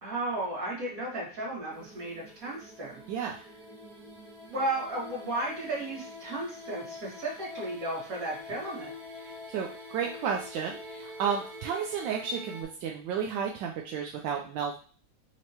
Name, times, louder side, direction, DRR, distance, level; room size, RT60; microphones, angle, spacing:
voice 1, 0.0-3.0 4.4-8.9, right 2 dB, 40° right, -5 dB, 2.2 m, -34 dB
sound 1, 1.7-12.6, left 2 dB, 55° right, 1.4 m, -45 dB
voice 2, 3.1-3.4 9.2-14.8, right 7 dB, 75° right, 0 dB, 1.1 m, -32 dB
4.4 x 2.9 x 2.9 m, 0.41 s
omnidirectional pair, 2.3 m